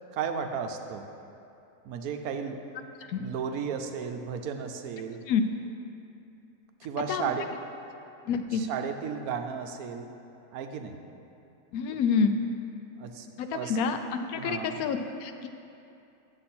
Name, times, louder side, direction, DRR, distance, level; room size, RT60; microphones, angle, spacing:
voice 1, 0.1-1.0 1.8-2.6 3.2-5.2 6.8-7.5 8.5-10.1 10.5-11.0 13.0-13.8 14.3-14.8, right 7 dB, 90° right, 6 dB, 1.1 m, -34 dB
voice 2, 8.3-8.6 11.7-12.3 13.4-14.0 14.3-15.5, left 6 dB, 85° left, 7 dB, 1.1 m, -27 dB
9.7 x 7.3 x 4.3 m, 2.7 s
omnidirectional pair, 1.5 m